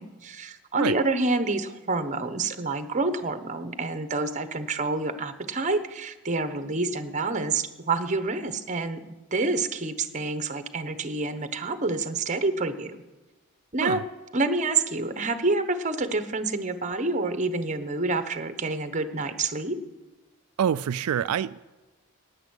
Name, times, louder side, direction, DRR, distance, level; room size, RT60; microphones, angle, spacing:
voice 1, 0.0-9.0 9.3-13.0 13.7-14.0 14.3-19.8, right 3 dB, 35° right, 10 dB, 1.0 m, -28 dB
voice 2, 20.6-21.6, right 8 dB, 90° right, 13 dB, 0.3 m, -26 dB
11.0 x 8.1 x 9.6 m, 1.2 s
head